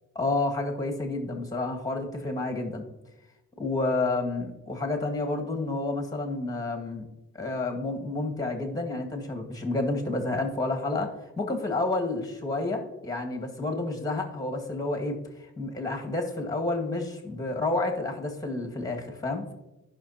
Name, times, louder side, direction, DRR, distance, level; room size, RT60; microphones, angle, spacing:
voice 1, 0.2-2.9 3.6-7.1 7.3-15.2 15.6-19.5, left 2 dB, 10° left, 3 dB, 1.9 m, -30 dB
15.0 x 5.9 x 2.8 m, 0.98 s
cardioid pair, 90°, 30 cm